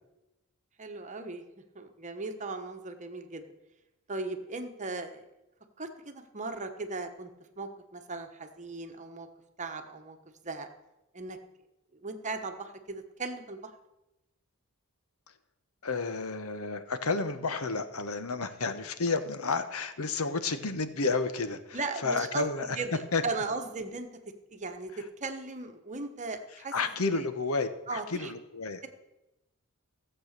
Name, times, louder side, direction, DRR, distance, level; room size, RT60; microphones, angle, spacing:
voice 1, 0.8-1.4 1.7-3.4 4.1-5.2 5.8-7.3 7.6-9.3 9.6-10.2 10.4-10.7 11.1-11.4 12.0-13.7 21.7-22.4 22.8-24.1 24.5-26.7 27.1-27.3 27.9-28.3, right 3 dB, 35° right, 6 dB, 1.2 m, -37 dB
voice 2, 15.8-22.8 23.1-23.2 24.9-25.0 26.7-28.8, left 3 dB, 75° left, 11 dB, 1.0 m, -31 dB
15.0 x 7.8 x 6.6 m, 0.96 s
head